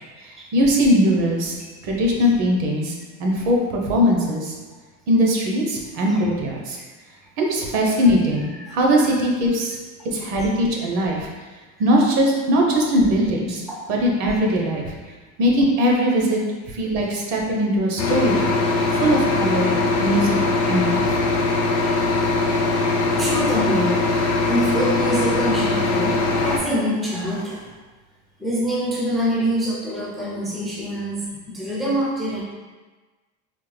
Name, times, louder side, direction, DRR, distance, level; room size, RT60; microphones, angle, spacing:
voice 1, 0.2-1.6 1.8-2.9 3.2-4.5 5.1-6.8 7.4-9.8 10.0-11.3 11.8-13.6 13.9-14.9 15.4-16.4 16.7-18.5 18.9-21.2, equal, 60° right, -1 dB, 0.8 m, -20 dB
voice 2, 7.9-9.2 11.8-11.9 12.8-12.9 22.3-22.7 23.2-27.6 28.4-32.4, equal, ahead, -7 dB, 0.4 m, -26 dB
sound 1, 18.0-26.6, left 3 dB, 50° left, 0.6 m, -21 dB
3.6 x 2.1 x 3.2 m, 1.3 s
cardioid pair, 160°, 30 cm